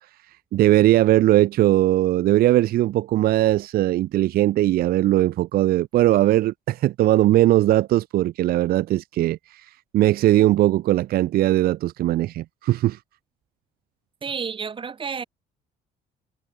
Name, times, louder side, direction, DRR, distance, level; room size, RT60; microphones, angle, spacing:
voice 1, 0.5-9.6 9.9-13.0, right 14 dB, 65° right, 0.6 m, -19 dB
voice 2, 14.2-15.2, right 6 dB, 30° right, 1.5 m, -30 dB
cardioid pair, 110°, 17 cm